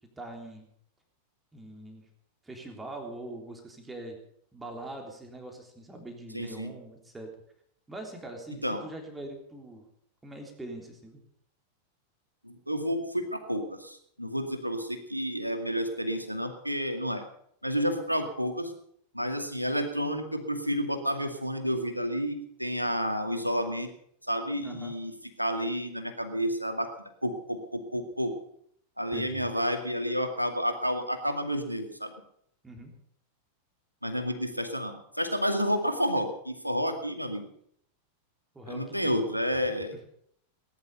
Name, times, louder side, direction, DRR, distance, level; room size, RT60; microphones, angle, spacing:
voice 1, 0.2-0.7 1.5-2.1 2.4-4.2 4.5-7.3 7.9-9.9 10.2-11.2 24.6-24.9 29.1-29.5 32.6-32.9 38.6-39.2 39.7-39.8, right 2 dB, 10° right, 2 dB, 3.5 m, -42 dB
voice 2, 6.3-6.7 8.6-8.8 12.4-17.2 17.6-18.7 19.1-23.9 24.3-25.1 25.4-26.9 27.2-28.4 29.0-32.1 34.0-37.5 38.7-40.0, equal, 90° right, 6 dB, 2.2 m, -30 dB
19.0 x 11.0 x 6.8 m, 0.68 s
figure-of-eight pair, 90°, 0 cm